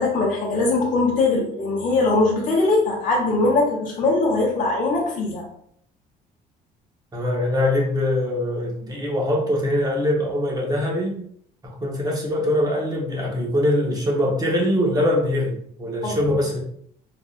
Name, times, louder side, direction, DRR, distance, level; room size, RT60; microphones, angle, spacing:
voice 1, 0.0-5.5 16.0-16.2, left 3 dB, 50° left, -3 dB, 1.0 m, -21 dB
voice 2, 7.1-11.2 11.6-16.6, left 1 dB, 20° right, -2 dB, 1.0 m, -23 dB
3.5 x 2.6 x 2.4 m, 0.66 s
cardioid pair, 110°, 17 cm